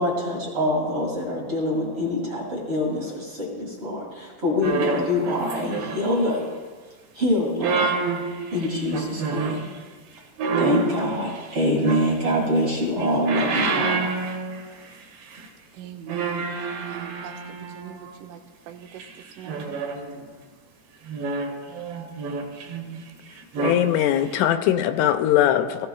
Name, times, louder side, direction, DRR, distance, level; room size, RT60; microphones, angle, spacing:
voice 1, 0.0-6.4 7.1-7.9 8.5-9.6 10.6-14.2, left 1 dB, 45° right, -3 dB, 1.8 m, -25 dB
sound 1, 4.6-6.4 7.4-9.7 10.4-12.5 12.9-15.0 15.2-15.5 16.1-18.1 19.0-20.3 21.1-23.0 23.4-23.9 24.3-24.4, right 4 dB, 65° right, 3.4 m, -28 dB
voice 2, 15.7-19.0 19.4-19.8, right 9 dB, 85° right, 4 dB, 3.4 m, -42 dB
voice 3, 23.6-25.9, left 11 dB, 85° left, 8 dB, 2.9 m, -21 dB
18.5 x 15.5 x 2.3 m, 1.4 s
omnidirectional pair, 5.6 m